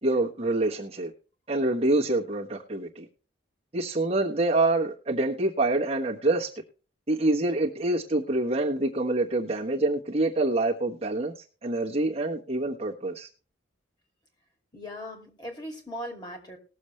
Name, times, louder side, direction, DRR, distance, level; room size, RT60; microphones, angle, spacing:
voice 1, 0.0-1.1 1.5-3.1 3.7-6.5 7.1-11.3 11.6-13.3, right 2 dB, 30° right, -3 dB, 1.2 m, -26 dB
voice 2, 14.7-16.6, equal, 20° left, 2 dB, 2.6 m, -39 dB
19.5 x 7.1 x 3.2 m, 0.37 s
head